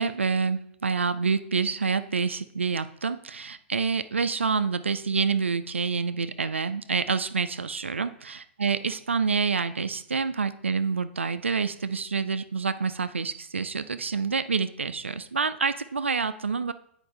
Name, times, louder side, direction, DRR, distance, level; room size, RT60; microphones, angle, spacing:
voice 1, 0.0-8.1 8.6-16.7, right 5 dB, 75° right, 13 dB, 0.4 m, -27 dB
9.1 x 4.9 x 3.3 m, 0.69 s
figure-of-eight pair, 105°, 7 cm